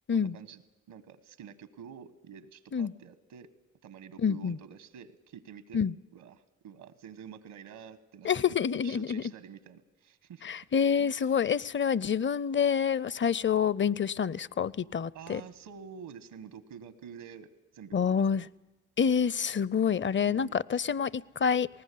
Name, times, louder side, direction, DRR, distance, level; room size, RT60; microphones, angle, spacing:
voice 1, 0.1-0.6 0.9-3.5 3.8-5.8 6.1-8.6 8.8-10.4 11.0-11.4 15.1-18.5 20.3-20.6, right 7 dB, 85° right, 14 dB, 1.4 m, -48 dB
voice 2, 4.2-4.6 5.7-5.9 8.2-9.2 10.4-15.4 17.9-18.4 19.0-21.7, left 7 dB, 40° left, 23 dB, 0.6 m, -27 dB
19.5 x 19.0 x 8.5 m, 1.1 s
supercardioid pair, 50°, 31 cm